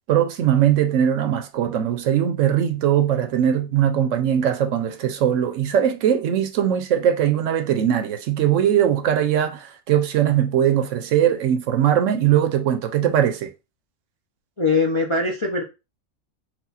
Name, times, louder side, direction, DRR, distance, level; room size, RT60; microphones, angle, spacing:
voice 1, 0.1-13.5, right 10 dB, 70° right, 0.9 m, -20 dB
voice 2, 14.6-15.6, left 3 dB, 40° left, 0.4 m, -21 dB
4.3 x 2.3 x 4.0 m
omnidirectional pair, 1.4 m